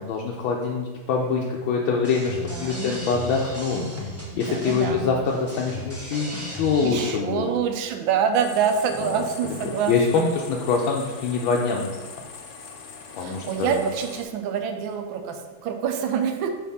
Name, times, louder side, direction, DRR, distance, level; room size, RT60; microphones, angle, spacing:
voice 1, 0.0-3.8 4.4-7.5 9.6-12.0 13.1-13.8, left 5 dB, 80° left, -1 dB, 1.4 m, -24 dB
sound 1, 2.0-7.1, left 1 dB, 20° right, 0.4 m, -36 dB
voice 2, 2.3-2.9 4.3-5.2 6.8-10.2 13.2-16.5, right 7 dB, 80° right, 6 dB, 1.4 m, -26 dB
sound 2, 8.3-14.2, left 5 dB, 65° left, 1.0 m, -42 dB
5.0 x 3.5 x 5.5 m, 1.3 s
omnidirectional pair, 2.2 m